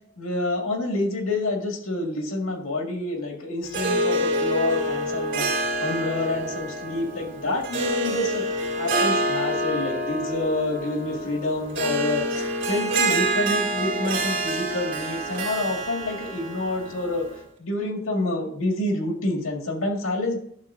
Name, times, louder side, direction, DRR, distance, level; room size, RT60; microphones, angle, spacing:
voice 1, 0.2-8.4 8.8-17.3 17.6-20.4, left 2 dB, 80° left, 2 dB, 1.9 m, -28 dB
Harp, 3.6-17.4, right 1 dB, 55° right, 2.4 m, -27 dB
11.5 x 6.8 x 2.6 m, 0.69 s
head